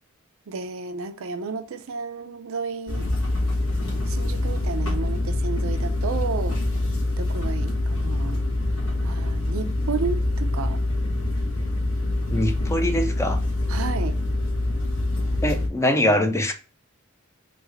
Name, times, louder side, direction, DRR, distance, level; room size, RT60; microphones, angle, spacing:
voice 1, 0.5-3.1 4.1-6.6 7.2-8.5 9.0-10.8 13.7-14.2, right 5 dB, 70° right, 0.5 m, -32 dB
sound 1, 2.9-15.7, left 2 dB, 65° left, 1.3 m, -25 dB
voice 2, 12.3-13.4 15.4-16.5, left 1 dB, 15° left, 0.5 m, -23 dB
3.4 x 2.6 x 3.2 m
head